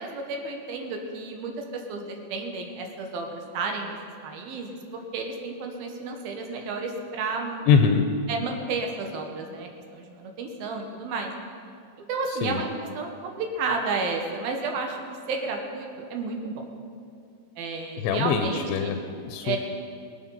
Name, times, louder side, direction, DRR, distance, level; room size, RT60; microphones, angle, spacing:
voice 1, 0.0-4.0 4.2-4.8 5.1-7.6 8.3-11.3 12.1-12.7 13.0-15.0 15.3-16.6 17.6-18.9 19.4-19.6, right 4 dB, 70° right, 3 dB, 2.8 m, -31 dB
voice 2, 7.7-8.0 12.3-12.6 18.0-19.6, left 6 dB, 85° left, 6 dB, 2.9 m, -23 dB
22.5 x 8.5 x 5.6 m, 2.4 s
omnidirectional pair, 5.1 m